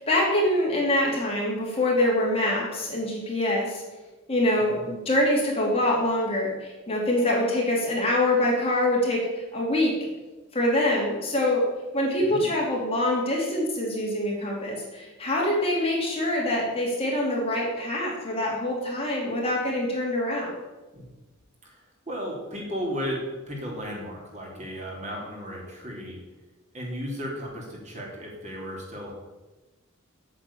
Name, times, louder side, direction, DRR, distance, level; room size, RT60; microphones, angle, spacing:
voice 1, 0.0-3.8 4.3-10.1 10.5-11.7 11.9-20.6, left 1 dB, 25° left, -3 dB, 2.9 m, -25 dB
voice 2, 12.2-12.5 20.9-21.1 21.6-26.2 26.7-29.1, equal, 35° right, -2 dB, 3.3 m, -35 dB
8.8 x 7.5 x 8.7 m, 1.1 s
head